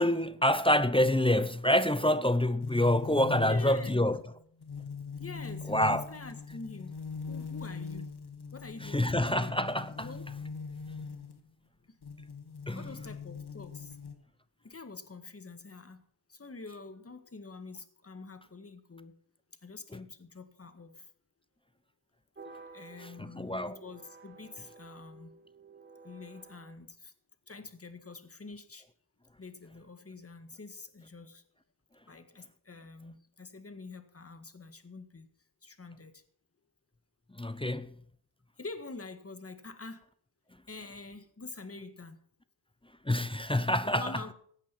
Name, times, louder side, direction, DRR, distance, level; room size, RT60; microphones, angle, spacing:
voice 1, 0.0-4.2 5.7-6.0 8.9-10.1 12.7-12.8 23.2-23.8 37.4-37.9 43.1-44.0, left 1 dB, 10° left, 0.7 m, -26 dB
sound 1, 2.6-11.5 12.0-14.2, left 5 dB, 60° left, 2.0 m, -42 dB
voice 2, 3.4-4.1 5.2-7.0 7.3-8.1 8.5-9.5 10.0-10.3 12.7-14.1 14.6-16.0 16.3-19.2 19.6-21.1 22.7-25.3 26.0-27.1 27.5-28.9 29.4-31.4 32.1-35.3 35.6-36.2 38.6-40.1 40.7-42.2 43.8-44.3, left 3 dB, 30° left, 1.8 m, -46 dB
sound 2, 22.3-26.7, right 4 dB, 25° right, 2.5 m, -53 dB
15.5 x 8.9 x 6.0 m
cardioid pair, 55°, 44 cm